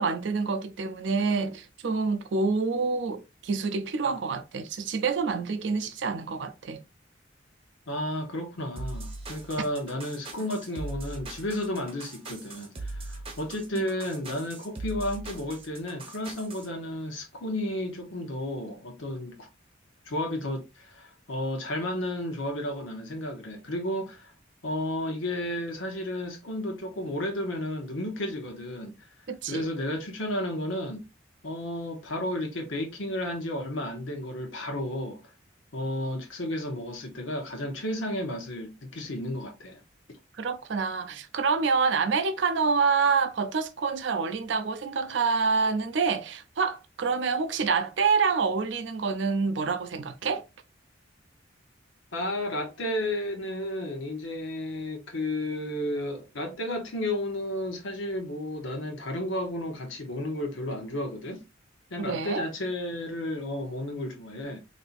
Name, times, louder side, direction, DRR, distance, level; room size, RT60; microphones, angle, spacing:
voice 1, 0.0-6.8 13.7-13.9 29.3-29.7 40.4-50.4 62.0-62.5, right 5 dB, 65° right, 0.5 m, -27 dB
voice 2, 7.9-19.5 20.1-24.3 24.6-29.0 29.5-31.1 31.4-35.2 35.7-39.8 52.1-61.4 61.9-64.6, left 1 dB, 85° left, 0.9 m, -32 dB
sound 1, 8.8-16.7, right 2 dB, 30° right, 0.8 m, -40 dB
4.2 x 2.7 x 2.5 m
head